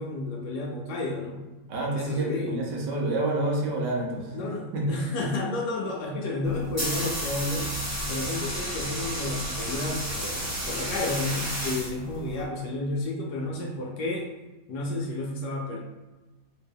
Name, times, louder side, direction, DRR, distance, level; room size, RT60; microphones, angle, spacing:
voice 1, 0.0-1.4 1.9-2.6 4.3-7.8 8.1-14.3 14.7-15.8, left 2 dB, 70° left, -1 dB, 1.1 m, -31 dB
voice 2, 1.7-4.9, right 2 dB, 70° right, -1 dB, 1.4 m, -28 dB
sound 1, 6.4-12.4, equal, 25° right, 0.3 m, -32 dB
3.4 x 2.9 x 3.4 m, 1.1 s
omnidirectional pair, 2.0 m